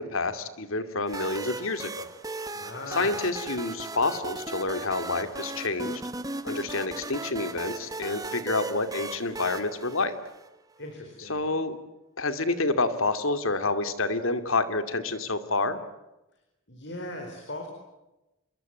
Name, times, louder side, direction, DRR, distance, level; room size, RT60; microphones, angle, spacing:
voice 1, 0.0-2.1 2.9-6.0 6.4-10.2 11.2-11.8 12.2-15.8, left 3 dB, 75° left, 10 dB, 2.6 m, -28 dB
sound 1, 1.1-10.7, right 2 dB, 15° right, 1.3 m, -37 dB
voice 2, 2.5-3.2 10.8-11.4 16.7-17.7, left 1 dB, 55° left, 3 dB, 4.7 m, -38 dB
27.0 x 23.0 x 9.2 m, 0.98 s
head